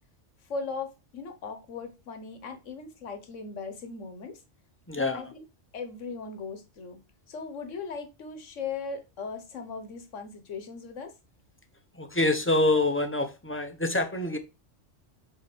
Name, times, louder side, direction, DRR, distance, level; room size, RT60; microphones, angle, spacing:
voice 1, 0.5-4.4 5.0-5.4 5.7-7.0 7.3-11.1, left 4 dB, 80° left, 1.6 m, -38 dB
voice 2, 4.9-5.2 11.9-14.4, left 2 dB, 10° left, 0.9 m, -26 dB
6.1 x 4.7 x 6.1 m
omnidirectional pair, 1.3 m